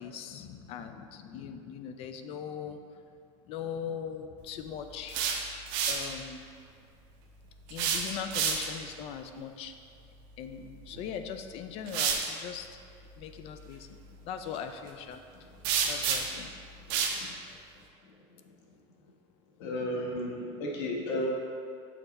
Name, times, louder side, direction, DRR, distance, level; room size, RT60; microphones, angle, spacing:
voice 1, 0.0-2.8 3.4-5.2 5.9-6.5 7.7-9.7 10.4-12.7 13.2-14.0 14.3-15.2 15.9-16.7, left 7 dB, 40° left, 8 dB, 0.4 m, -40 dB
sound 1, 4.9-6.1 7.7-8.9 10.9-11.1 11.9-12.3 15.6-16.4 16.9-17.2, right 6 dB, 60° right, 0.8 m, -29 dB
voice 2, 19.6-21.3, left 1 dB, 60° left, -2 dB, 1.3 m, -33 dB
5.8 x 5.4 x 4.0 m, 2.4 s
supercardioid pair, 155°, 16 cm